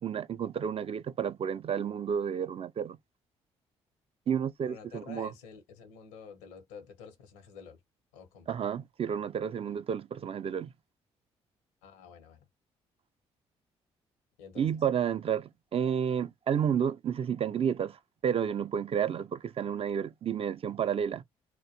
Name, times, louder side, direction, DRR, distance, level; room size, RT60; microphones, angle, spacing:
voice 1, 0.0-3.0 4.3-5.3 8.5-10.7 14.6-21.2, right 8 dB, 45° right, 0.4 m, -31 dB
voice 2, 4.6-7.8 8.1-8.5 11.8-12.4 14.4-14.7, left 6 dB, 90° left, 0.7 m, -49 dB
2.2 x 2.1 x 2.7 m
hypercardioid pair, 50°, 14 cm